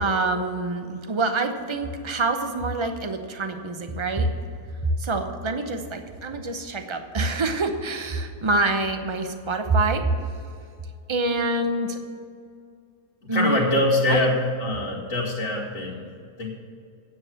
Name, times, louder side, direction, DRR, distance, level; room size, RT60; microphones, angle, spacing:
voice 1, 0.0-4.3 5.0-10.1 11.1-12.0 13.3-13.8 14.1-14.2, right 2 dB, 30° right, 6 dB, 0.5 m, -26 dB
voice 2, 13.2-16.1 16.4-16.5, left 1 dB, 55° left, -8 dB, 2.1 m, -24 dB
9.3 x 7.6 x 7.6 m, 2.3 s
omnidirectional pair, 1.8 m